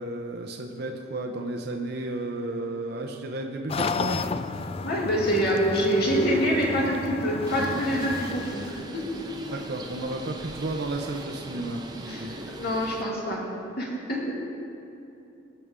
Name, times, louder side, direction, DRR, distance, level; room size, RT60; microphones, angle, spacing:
voice 1, 0.0-4.2 9.5-12.4, right 2 dB, 60° right, 3 dB, 0.7 m, -33 dB
sound 1, 3.7-8.8, left 4 dB, 30° left, 0.3 m, -33 dB
voice 2, 4.8-9.1 12.1-13.4 13.8-14.4, equal, 60° left, -4 dB, 2.4 m, -26 dB
Bird, 7.5-13.0, right 1 dB, 20° right, 0.8 m, -40 dB
20.5 x 6.9 x 3.7 m, 2.8 s
head